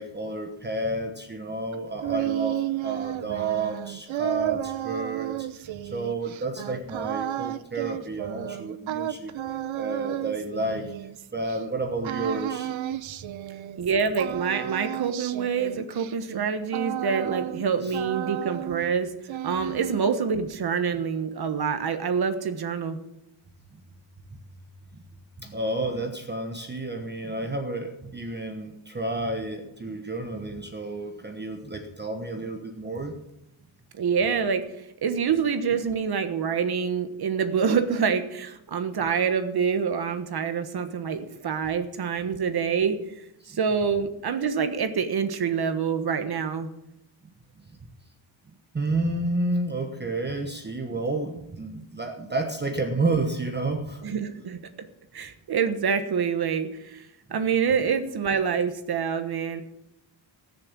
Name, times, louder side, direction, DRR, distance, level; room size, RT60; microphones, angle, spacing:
voice 1, 0.0-9.3 9.7-10.9 11.3-12.7 17.8-18.0 23.7-23.8 24.9-25.0 25.4-33.2 43.5-43.6 47.8-47.9 48.7-54.0, right 2 dB, 20° right, 5 dB, 1.2 m, -30 dB
sound 1, 1.7-11.6 12.0-13.9 14.2-17.7 17.9-18.9 19.2-20.2, right 13 dB, 75° right, 0.9 m, -32 dB
voice 2, 13.8-19.1 19.4-23.0 33.9-46.7 54.0-54.6 55.1-59.6, right 6 dB, 50° right, 9 dB, 1.4 m, -26 dB
19.0 x 6.8 x 7.3 m, 0.84 s
wide cardioid pair, 145°, 48 cm